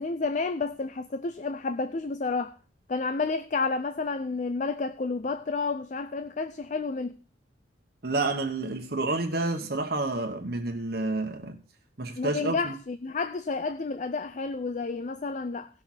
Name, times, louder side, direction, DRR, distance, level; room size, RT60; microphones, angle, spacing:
voice 1, 0.0-2.5 2.9-7.2 12.2-15.7, left 4 dB, 40° left, 0.4 m, -30 dB
voice 2, 8.0-11.6 12.0-12.7, right 2 dB, 55° right, 1.1 m, -29 dB
17.0 x 6.2 x 4.3 m
head